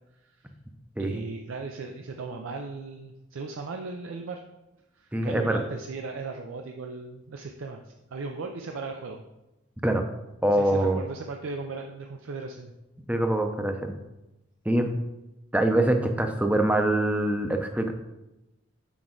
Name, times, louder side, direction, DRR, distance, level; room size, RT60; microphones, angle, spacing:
voice 1, 1.0-4.4 5.0-9.2 10.6-12.7, right 4 dB, 90° right, 4 dB, 0.5 m, -37 dB
voice 2, 5.1-5.6 9.8-10.0 10.4-11.0 13.1-13.9 14.7-14.9 15.5-17.9, right 1 dB, 5° right, 5 dB, 0.5 m, -24 dB
6.1 x 4.6 x 3.8 m, 0.97 s
head